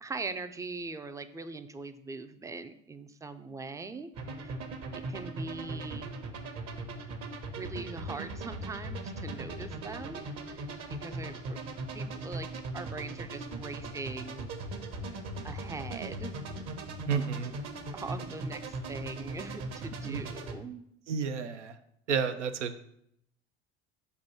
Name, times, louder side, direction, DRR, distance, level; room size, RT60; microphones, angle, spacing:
voice 1, 0.0-4.6 4.9-6.1 7.6-11.6 11.9-14.5 15.4-16.4 17.9-20.9, right 3 dB, 10° right, 10 dB, 0.3 m, -41 dB
sound 1, 4.2-20.5, right 2 dB, 50° right, 0.9 m, -39 dB
voice 2, 17.1-17.5 20.0-20.2 21.1-21.8 22.1-22.8, right 6 dB, 90° right, 10 dB, 0.5 m, -31 dB
6.9 x 2.6 x 5.5 m, 0.74 s
hypercardioid pair, 65°, 35 cm